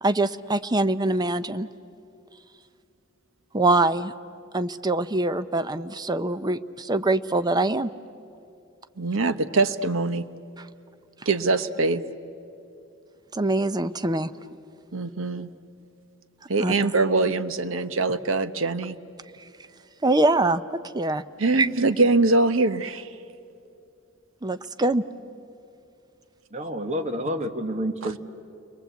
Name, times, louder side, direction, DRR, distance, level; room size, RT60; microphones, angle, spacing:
voice 1, 0.0-1.7 3.5-4.1 4.5-7.9 13.3-14.3 16.6-16.7 20.0-21.2 21.6-21.7 24.4-25.0, right 2 dB, 20° right, 12 dB, 0.6 m, -23 dB
voice 2, 9.0-10.3 11.2-12.0 14.9-15.5 16.5-19.0 21.4-23.2 28.0-28.1, right 3 dB, 75° right, 12 dB, 0.9 m, -23 dB
voice 3, 26.5-28.2, equal, 35° right, 6 dB, 1.4 m, -29 dB
29.5 x 22.5 x 8.2 m, 2.6 s
head